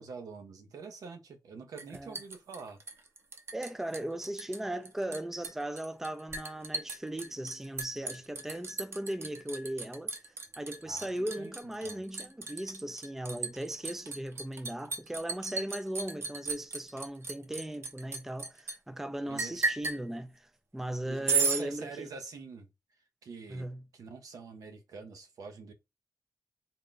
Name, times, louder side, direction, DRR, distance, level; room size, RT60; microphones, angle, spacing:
voice 1, 0.0-2.8 10.8-11.5 11.8-12.0 19.3-19.6 21.1-22.7 23.2-23.7 23.9-25.7, right 4 dB, 85° right, 0.7 m, -45 dB
Liquid, 1.8-3.7 3.9-4.6 4.8-18.8 19.4-20.0 21.3-21.6, right 4 dB, 45° right, 0.7 m, -35 dB
voice 2, 3.5-10.1 10.6-22.1 23.5-23.8, right 1 dB, 5° right, 0.4 m, -38 dB
3.7 x 2.2 x 3.8 m
wide cardioid pair, 130°, 6 cm